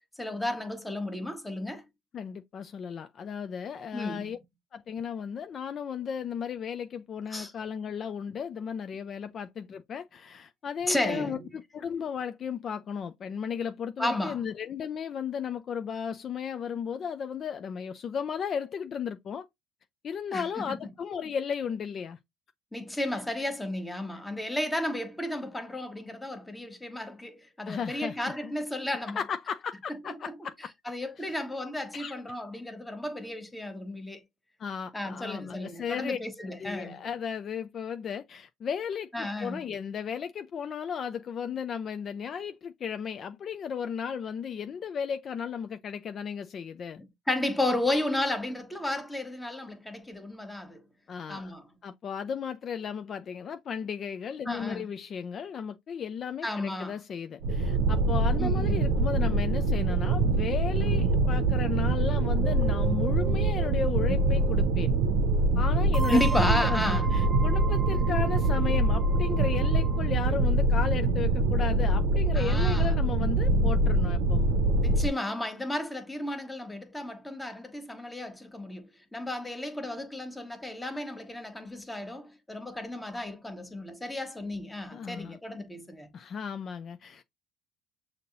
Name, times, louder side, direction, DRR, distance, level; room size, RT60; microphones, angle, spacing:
voice 1, 0.0-1.8 3.9-4.3 7.3-7.5 10.9-11.5 14.0-14.4 20.3-20.7 22.7-29.2 30.0-30.3 30.8-34.2 34.9-37.1 39.1-39.6 47.0-50.8 51.3-51.7 54.4-54.9 56.4-56.9 58.4-58.9 66.1-67.2 72.3-72.9 74.8-86.1, left 1 dB, 10° left, 1.2 m, -33 dB
voice 2, 2.1-4.4 4.7-19.5 20.0-22.2 27.7-28.5 29.2-30.7 31.2-31.3 31.9-32.4 34.6-36.2 36.6-47.0 51.1-51.5 51.8-64.9 65.6-74.5 84.9-85.4 86.1-87.2, left 7 dB, 45° left, 0.4 m, -35 dB
sound 1, 57.4-75.1, right 2 dB, 70° right, 0.7 m, -24 dB
sound 2, 62.4-64.7 65.9-70.2, right 4 dB, 15° right, 0.9 m, -37 dB
6.5 x 2.8 x 2.5 m
hypercardioid pair, 65°, 0 cm